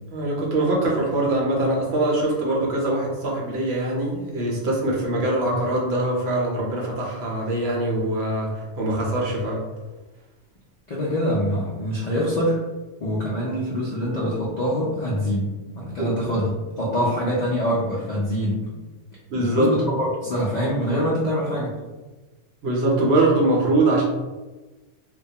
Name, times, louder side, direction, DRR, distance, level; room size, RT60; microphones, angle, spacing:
voice 1, 0.1-9.7 16.0-16.1 17.0-17.1 19.3-19.7 22.6-24.0, right 2 dB, 65° right, -2 dB, 0.7 m, -23 dB
voice 2, 10.9-12.6 13.0-18.7 19.3-21.7, equal, 65° left, -6 dB, 0.4 m, -24 dB
2.2 x 2.1 x 2.7 m, 1.2 s
omnidirectional pair, 1.3 m